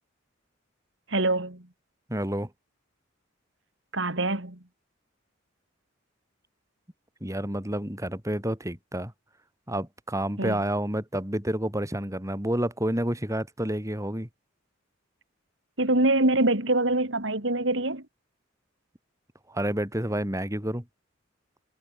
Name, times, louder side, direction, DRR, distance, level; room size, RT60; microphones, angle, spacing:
voice 1, 1.1-1.6 3.9-4.6 10.4-10.6 15.8-18.0, right 2 dB, 65° right, 3.2 m, -24 dB
voice 2, 2.1-2.5 7.2-9.1 9.7-14.3 19.5-20.8, right 1 dB, 15° right, 3.9 m, -29 dB
head